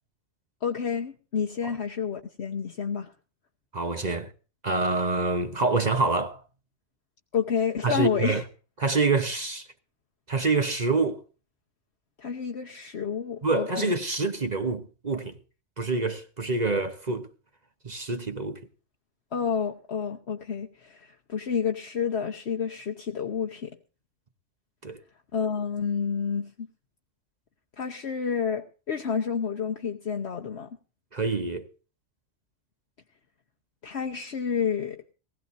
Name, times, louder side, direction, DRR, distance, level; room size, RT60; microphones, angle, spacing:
voice 1, 0.6-3.1 7.3-8.4 12.2-13.9 19.3-23.7 25.3-26.7 27.8-30.7 33.8-35.0, left 7 dB, 65° left, 1.3 m, -29 dB
voice 2, 3.7-4.3 4.6-6.4 7.8-8.4 8.8-9.7 10.3-11.2 13.4-15.4 15.8-17.3 17.8-18.6 24.8-25.0 31.1-31.7, right 3 dB, 40° right, 1.1 m, -26 dB
19.5 x 16.0 x 2.7 m
omnidirectional pair, 1.2 m